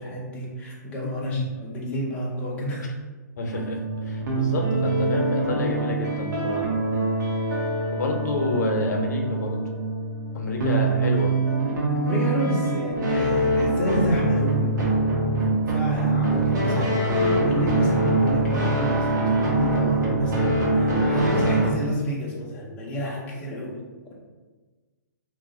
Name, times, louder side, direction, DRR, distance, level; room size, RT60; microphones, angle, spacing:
voice 1, 0.0-2.9 12.0-14.9 15.3-23.8, equal, 10° left, -4 dB, 0.5 m, -30 dB
voice 2, 1.0-1.4 3.4-6.7 7.9-9.6 10.3-11.3, left 2 dB, 65° left, 2 dB, 0.6 m, -28 dB
sound 1, 3.5-21.7, right 2 dB, 70° right, 0.9 m, -24 dB
2.3 x 2.1 x 3.7 m, 1.3 s
hypercardioid pair, 155°, 10 cm